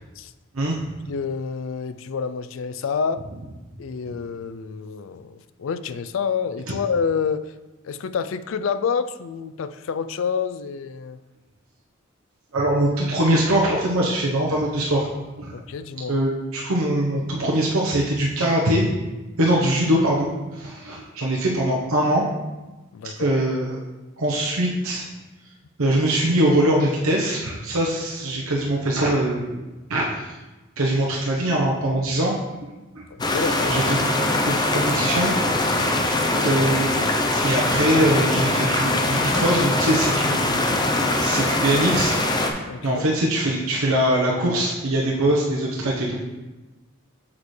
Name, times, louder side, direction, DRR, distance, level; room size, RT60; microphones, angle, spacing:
voice 1, 1.1-3.2 3.8-7.5 7.8-11.2 15.5-16.2 22.9-23.3 33.2-33.8 42.7-43.0, left 6 dB, 65° left, 12 dB, 0.4 m, -28 dB
voice 2, 12.5-15.1 15.4-15.5 16.1-18.9 19.4-22.2 23.2-23.8 24.2-25.0 25.8-30.3 30.8-32.3 32.9-33.0 33.7-34.0 34.4-35.3 35.7-36.0 36.4-37.0 37.4-40.7 41.2-42.1 42.8-46.2, right 1 dB, 90° right, -3 dB, 1.0 m, -22 dB
sound 1, 33.2-42.5, left 2 dB, 20° left, 0.6 m, -22 dB
7.3 x 6.4 x 3.2 m, 1.1 s
head